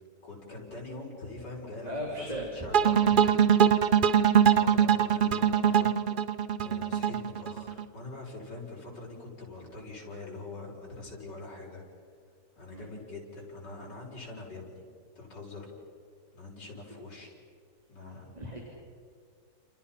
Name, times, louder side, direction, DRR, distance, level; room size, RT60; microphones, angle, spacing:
voice 1, 0.2-3.4 4.4-5.9 6.6-11.8 12.6-14.8 15.1-15.7 16.3-17.4 17.9-18.3, left 2 dB, 80° left, -4 dB, 6.4 m, -44 dB
voice 2, 1.8-2.7 3.0-3.2 12.7-12.9 18.4-18.6, equal, 20° right, -1 dB, 3.8 m, -37 dB
sound 1, 2.7-7.8, right 8 dB, 55° right, 0.5 m, -22 dB
30.0 x 30.0 x 5.8 m, 2.2 s
omnidirectional pair, 1.8 m